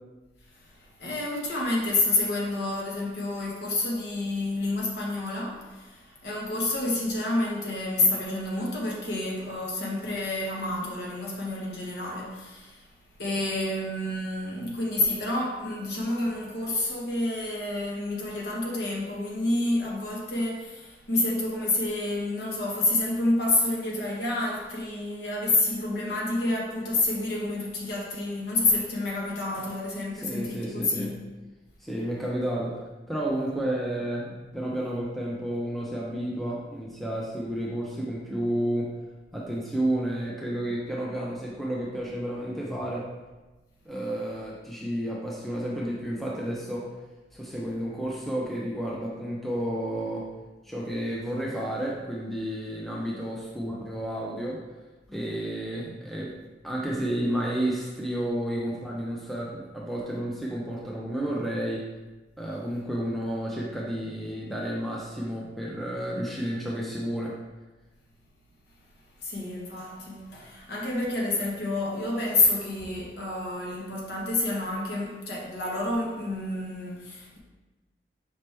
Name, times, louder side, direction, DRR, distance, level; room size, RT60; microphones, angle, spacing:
voice 1, 1.0-12.8 13.2-31.2 69.2-77.4, left 2 dB, 65° left, -4 dB, 1.1 m, -29 dB
voice 2, 30.1-31.1 31.8-38.9 39.3-43.0 43.9-46.9 47.3-50.3 50.6-54.6 55.1-56.3 56.6-61.9 62.4-67.4, right 1 dB, ahead, -5 dB, 0.5 m, -31 dB
5.2 x 2.9 x 3.3 m, 1.2 s
head